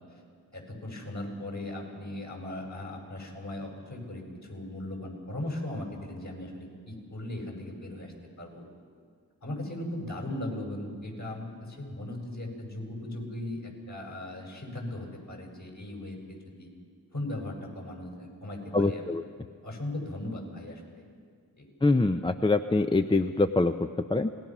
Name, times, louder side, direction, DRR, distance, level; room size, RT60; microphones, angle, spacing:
voice 1, 0.5-8.1 8.4-8.6 9.4-16.7 17.1-19.1 19.6-20.8 21.6-21.7, left 1 dB, 50° left, 0 dB, 6.9 m, -38 dB
voice 2, 18.7-19.2 21.8-23.7 24.1-24.3, left 2 dB, 15° left, 8 dB, 0.7 m, -24 dB
26.5 x 19.5 x 6.1 m, 2.1 s
cardioid pair, 50°, 37 cm